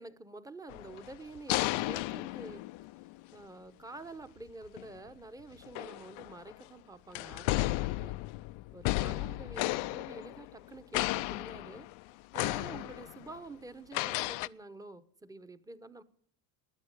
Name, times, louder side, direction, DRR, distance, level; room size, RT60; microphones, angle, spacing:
voice 1, 0.0-2.6 3.3-8.2 8.7-11.9 12.3-16.0, right 2 dB, 5° right, 11 dB, 0.9 m, -48 dB
sound 1, 0.7-3.2 4.7-4.9 5.6-6.6 7.2-10.7 10.9-12.0 12.3-13.3 13.9-14.5, left 20 dB, 70° left, 0.6 m, -34 dB
21.0 x 8.1 x 8.1 m, 0.62 s
cardioid pair, 110°, 49 cm